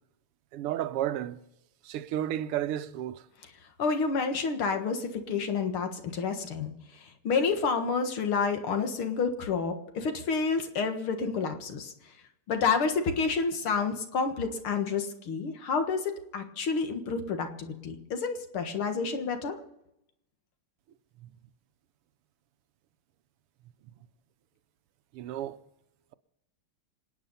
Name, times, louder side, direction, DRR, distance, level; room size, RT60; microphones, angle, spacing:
voice 1, 0.5-1.4 1.8-3.3 21.2-21.3 23.9-24.0 25.1-25.6, right 12 dB, 90° right, 1.7 m, -32 dB
voice 2, 3.8-11.9 12.5-19.6, left 5 dB, 70° left, 2.4 m, -29 dB
27.0 x 9.1 x 5.5 m
omnidirectional pair, 2.4 m